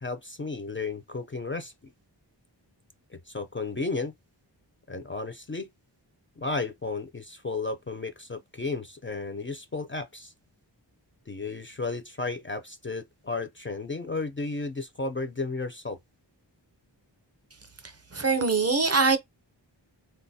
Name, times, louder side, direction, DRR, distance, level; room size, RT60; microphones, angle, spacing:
voice 1, 0.0-1.9 3.1-4.1 4.9-5.7 6.4-10.3 11.3-16.0, left 3 dB, 30° left, 0.4 m, -33 dB
voice 2, 18.1-19.2, right 4 dB, 35° right, 0.5 m, -22 dB
3.6 x 2.2 x 2.7 m
wide cardioid pair, 50°, 43 cm